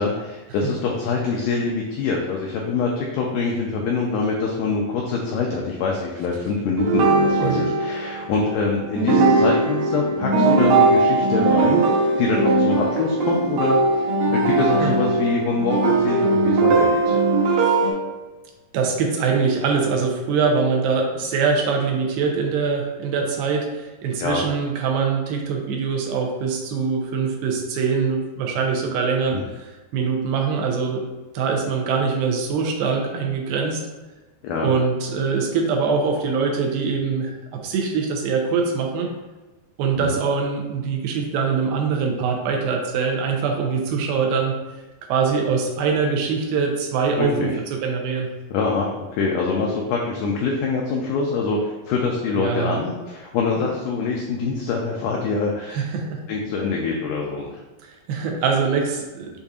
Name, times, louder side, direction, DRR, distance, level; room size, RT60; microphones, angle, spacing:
voice 1, 0.0-17.2 24.2-24.5 29.3-29.4 34.4-34.7 40.0-40.2 47.2-47.5 48.5-55.8 56.3-57.6, left 4 dB, 85° left, -1 dB, 1.8 m, -25 dB
sound 1, 6.8-8.6 9.0-17.9, right 3 dB, 70° right, 2.3 m, -19 dB
voice 2, 7.4-7.8 14.8-14.9 17.6-17.7 18.7-29.7 29.9-31.0 31.3-33.8 34.6-39.1 39.8-44.6 45.1-47.5 47.8-48.3 52.4-52.8 55.7-56.2 57.8-59.3, right 5 dB, 85° right, 1 dB, 2.4 m, -23 dB
6.7 x 2.6 x 2.4 m, 1.2 s
omnidirectional pair, 4.2 m